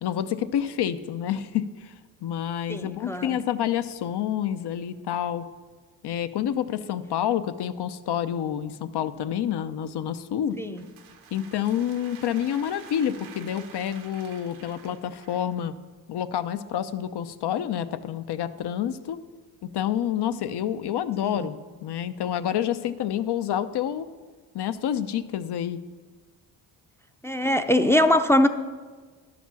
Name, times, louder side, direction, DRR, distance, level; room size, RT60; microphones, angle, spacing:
voice 1, 0.0-1.9 2.2-5.5 6.0-10.6 11.3-15.7 16.1-19.2 19.6-21.6 21.8-24.1 24.5-25.8, left 10 dB, 60° left, 13 dB, 0.7 m, -28 dB
voice 2, 2.7-3.4 10.6-10.8 21.2-21.5 27.2-28.5, left 1 dB, 5° left, 6 dB, 0.6 m, -22 dB
sound 1, 10.5-15.6, right 7 dB, 80° right, 1.2 m, -49 dB
11.5 x 5.0 x 7.0 m, 1.4 s
supercardioid pair, 55°, 47 cm